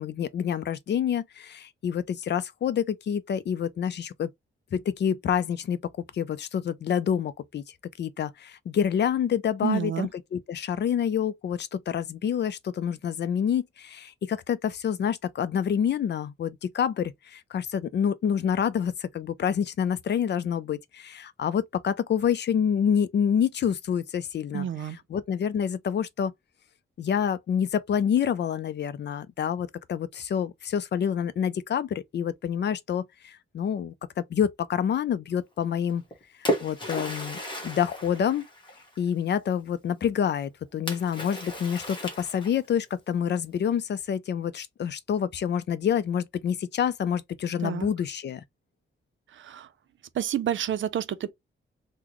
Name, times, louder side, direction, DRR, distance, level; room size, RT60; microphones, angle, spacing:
voice 1, 0.0-4.3 4.7-5.8 6.1-7.6 8.0-24.7 25.1-26.3 27.0-36.0 36.6-37.4 37.6-38.4 39.0-48.4, left 8 dB, 55° left, 0.4 m, -27 dB
voice 2, 9.6-10.1 24.5-25.0 47.6-47.9 49.3-49.7 50.1-51.3, right 10 dB, 65° right, 0.5 m, -29 dB
Splash splatter, 35.9-39.1 40.9-42.8, equal, 20° left, 1.2 m, -34 dB
3.8 x 2.1 x 2.9 m
wide cardioid pair, 140°, 21 cm